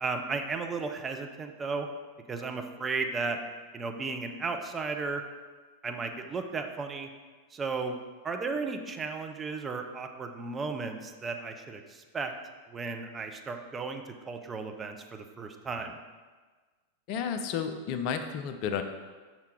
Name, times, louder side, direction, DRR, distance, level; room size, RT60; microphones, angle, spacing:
voice 1, 0.0-1.9 2.3-3.4 3.7-5.2 5.8-7.1 7.5-8.0 8.2-12.3 12.7-16.0, right 4 dB, 20° right, 4 dB, 0.6 m, -34 dB
voice 2, 17.1-18.8, left 7 dB, 45° left, 7 dB, 0.5 m, -32 dB
5.7 x 5.1 x 4.5 m, 1.4 s
figure-of-eight pair, 90°, 0 cm